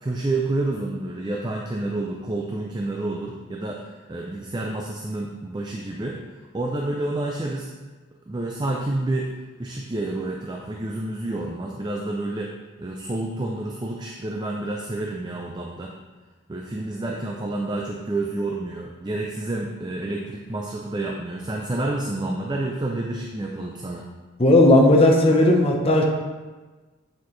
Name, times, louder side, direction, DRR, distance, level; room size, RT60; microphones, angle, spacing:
voice 1, 0.0-6.2 6.5-7.7 8.3-9.3 9.6-15.9 16.5-24.1, right 2 dB, 20° right, 0 dB, 0.4 m, -29 dB
voice 2, 24.4-26.0, left 1 dB, 30° left, 1 dB, 0.7 m, -15 dB
8.1 x 4.3 x 3.1 m, 1.3 s
head